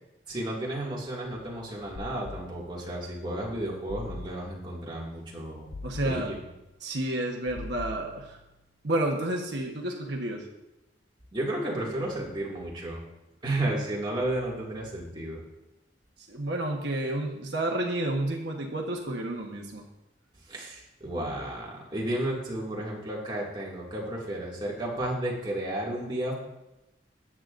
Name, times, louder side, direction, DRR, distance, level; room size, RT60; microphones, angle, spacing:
voice 1, 0.3-5.7 6.0-6.4 11.3-13.0 13.4-15.4 20.5-26.3, right 1 dB, 25° right, -4 dB, 2.2 m, -32 dB
sound 1, 2.0-3.0 3.9-4.8 5.7-6.8 7.6-8.6, left 3 dB, 75° left, 0.6 m, -43 dB
voice 2, 5.8-6.3 6.8-8.4 8.8-10.4 16.3-19.8, right 1 dB, 70° right, 0 dB, 1.2 m, -30 dB
14.0 x 8.8 x 2.6 m, 0.95 s
head